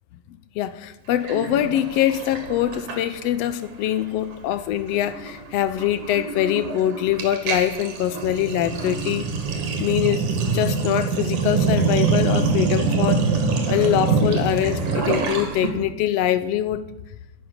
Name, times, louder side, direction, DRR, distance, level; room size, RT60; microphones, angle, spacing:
voice 1, 0.5-9.3 9.8-10.3 10.5-13.2 13.7-16.8, left 12 dB, 75° left, 14 dB, 1.5 m, -23 dB
Sink (filling or washing), 1.2-3.5 3.7-4.0 4.3-15.7, right 4 dB, 75° right, 3.4 m, -25 dB
11.5 x 7.5 x 9.7 m, 0.91 s
omnidirectional pair, 3.5 m